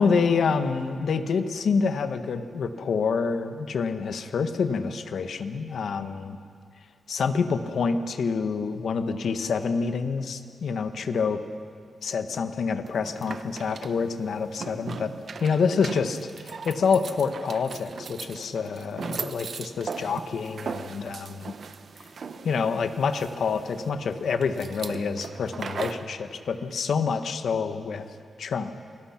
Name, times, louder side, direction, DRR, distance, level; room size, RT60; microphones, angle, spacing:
voice 1, 0.0-6.4 7.1-11.4 12.0-15.1 15.4-21.5 22.4-28.7, left 5 dB, 70° left, 8 dB, 1.3 m, -27 dB
sound 1, 12.9-26.1, right 5 dB, 55° right, 1.0 m, -39 dB
27.5 x 20.5 x 5.9 m, 2.2 s
wide cardioid pair, 125°, 0 cm